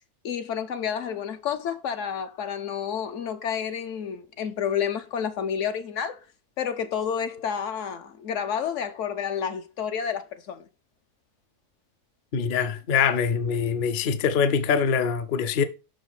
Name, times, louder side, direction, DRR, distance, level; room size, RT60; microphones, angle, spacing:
voice 1, 0.2-6.2 6.6-10.6, left 8 dB, 70° left, 1.0 m, -30 dB
voice 2, 12.3-15.6, left 6 dB, 55° left, 0.6 m, -24 dB
5.9 x 5.1 x 3.9 m
omnidirectional pair, 1.4 m